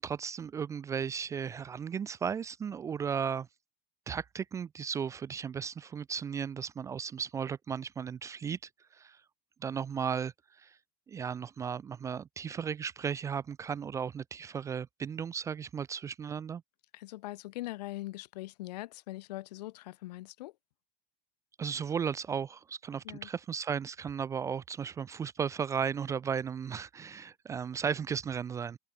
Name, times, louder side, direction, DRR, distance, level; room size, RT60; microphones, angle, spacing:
voice 1, 0.0-3.5 4.1-9.2 9.6-10.8 11.1-16.6 21.6-28.8, right 7 dB, 15° right, 0.5 m, -35 dB
voice 2, 16.9-20.5 23.0-23.3, left 18 dB, 80° left, 2.3 m, -41 dB
supercardioid pair, 165°, 21 cm